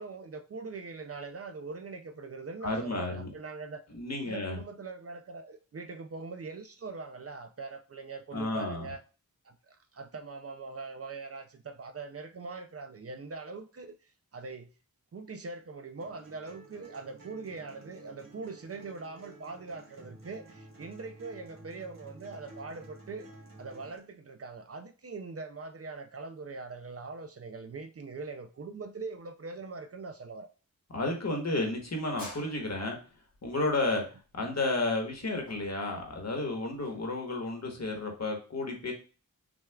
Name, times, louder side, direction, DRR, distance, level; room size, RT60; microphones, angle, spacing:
voice 1, 0.0-3.8 4.2-9.0 9.4-14.7 15.1-23.3 23.6-30.5 34.0-34.1, right 4 dB, 45° right, 0.4 m, -42 dB
voice 2, 2.6-3.3 3.9-4.6 8.3-8.9 30.9-33.0 33.4-34.0 34.3-38.9, left 2 dB, 50° left, 1.2 m, -32 dB
sound 1, 16.0-24.0, right 2 dB, 70° right, 1.3 m, -52 dB
sound 2, 32.2-37.1, left 1 dB, 85° left, 2.1 m, -51 dB
6.1 x 2.3 x 2.3 m
wide cardioid pair, 65°, 34 cm